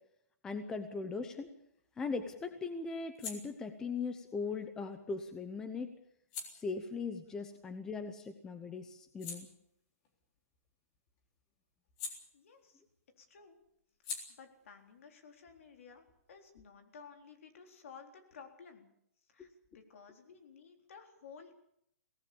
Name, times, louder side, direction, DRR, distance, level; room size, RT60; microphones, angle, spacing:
voice 1, 0.4-1.6 2.0-5.9 6.5-9.5 19.4-19.5, left 4 dB, 10° left, 9 dB, 0.8 m, -39 dB
sound 1, 1.4-8.3 8.7-12.9 13.2-16.6, left 4 dB, 25° left, 3.6 m, -50 dB
voice 2, 12.3-12.8 13.2-13.6 14.4-18.9 19.3-21.6, left 6 dB, 60° left, 5 dB, 4.0 m, -55 dB
24.0 x 18.0 x 7.0 m, 0.73 s
hypercardioid pair, 175°, 8 cm